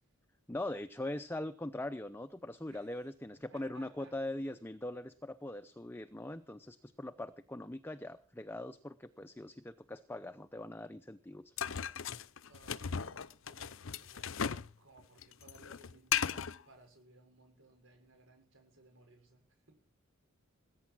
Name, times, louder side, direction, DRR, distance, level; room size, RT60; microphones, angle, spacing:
voice 1, 0.5-11.9, left 1 dB, 10° left, 10 dB, 0.7 m, -42 dB
voice 2, 2.7-3.0 3.5-4.1 12.5-13.7 14.0-14.4 14.7-19.8, right 2 dB, 65° right, 4 dB, 6.4 m, -61 dB
sound 1, 11.6-14.7 15.0-16.6, left 8 dB, 70° left, 0.7 m, -36 dB
20.5 x 9.5 x 6.1 m, 0.39 s
head